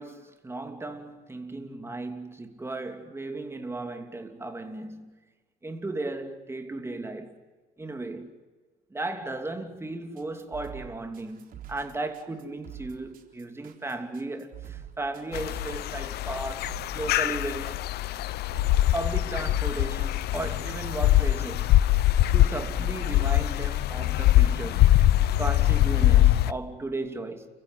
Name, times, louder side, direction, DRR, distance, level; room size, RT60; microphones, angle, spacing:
voice 1, 0.0-5.2 5.6-7.4 7.8-8.4 8.9-17.8 18.9-21.8 22.3-24.9 25.4-27.5, right 2 dB, 15° right, 3.0 m, -35 dB
sound 1, 10.2-26.3, right 10 dB, 55° right, 3.9 m, -45 dB
sound 2, 15.3-26.5, left 14 dB, 70° left, 0.8 m, -23 dB
30.0 x 15.5 x 9.5 m
cardioid pair, 110°, 17 cm